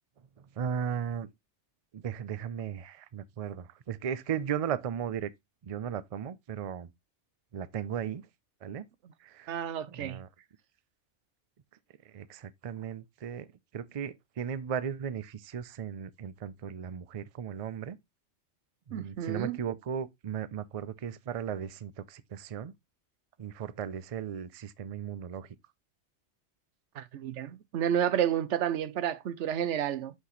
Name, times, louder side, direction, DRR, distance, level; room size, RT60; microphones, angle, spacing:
voice 1, 0.6-1.3 1.9-5.3 5.6-6.9 7.5-8.3 8.6-8.8 9.2-9.6 9.9-10.3 12.1-18.0 18.9-22.7 23.4-25.5, right 8 dB, 45° right, 0.5 m, -36 dB
voice 2, 9.5-10.2 18.9-19.6 27.0-30.1, right 10 dB, 85° right, 1.0 m, -30 dB
6.2 x 5.9 x 3.1 m
omnidirectional pair, 1.2 m